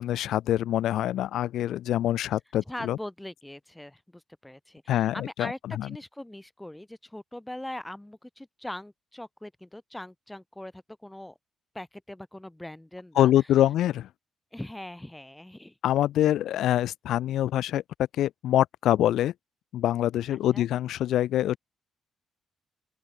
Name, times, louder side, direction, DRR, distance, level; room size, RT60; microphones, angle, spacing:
voice 1, 0.0-3.0 4.9-5.9 13.2-14.1 15.8-17.8 18.2-19.3 19.7-21.6, left 12 dB, 80° left, 1.1 m, -25 dB
voice 2, 2.7-11.4 11.7-13.3 14.5-15.8 20.3-20.7, left 1 dB, 10° left, 4.5 m, -41 dB
open air
cardioid pair, 90°, 0 cm